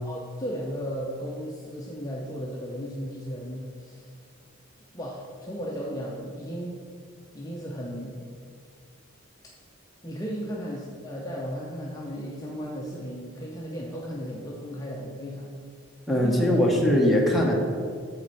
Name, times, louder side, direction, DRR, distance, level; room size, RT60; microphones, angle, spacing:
voice 1, 0.0-4.1 4.9-6.8 7.3-8.2 10.0-15.5 16.2-16.5, equal, 15° left, -4 dB, 0.6 m, -35 dB
voice 2, 16.1-17.5, left 1 dB, ahead, -2 dB, 1.0 m, -21 dB
7.0 x 4.4 x 6.3 m, 2.2 s
head